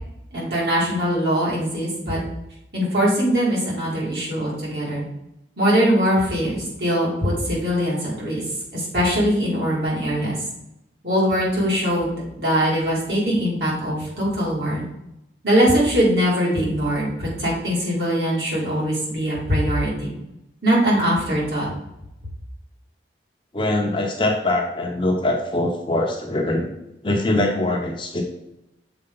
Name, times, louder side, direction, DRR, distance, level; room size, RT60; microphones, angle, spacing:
voice 1, 0.3-2.2 2.7-5.0 5.6-8.4 8.7-10.4 11.0-14.9 15.4-20.1 20.6-21.7, equal, 60° right, -5 dB, 2.6 m, -21 dB
voice 2, 23.5-26.8 27.0-28.2, left 1 dB, 25° left, 1 dB, 0.9 m, -22 dB
6.8 x 4.6 x 3.9 m, 0.87 s
head